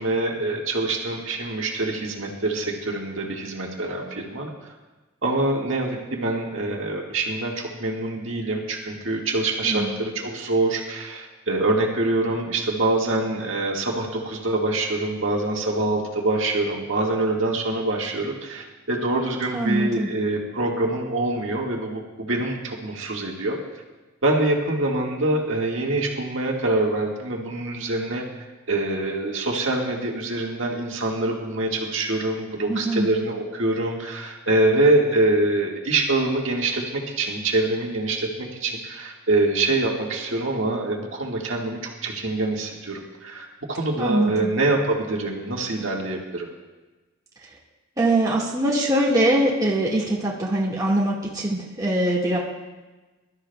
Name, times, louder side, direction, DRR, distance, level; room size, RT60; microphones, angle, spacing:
voice 1, 0.0-4.5 5.2-23.6 24.2-28.2 28.7-46.5, right 2 dB, 65° right, -1 dB, 1.8 m, -25 dB
voice 2, 9.6-10.0 19.5-20.1 32.7-33.1 44.0-44.5 48.0-52.4, right 1 dB, 15° right, -5 dB, 1.7 m, -22 dB
22.0 x 12.5 x 2.3 m, 1.2 s
head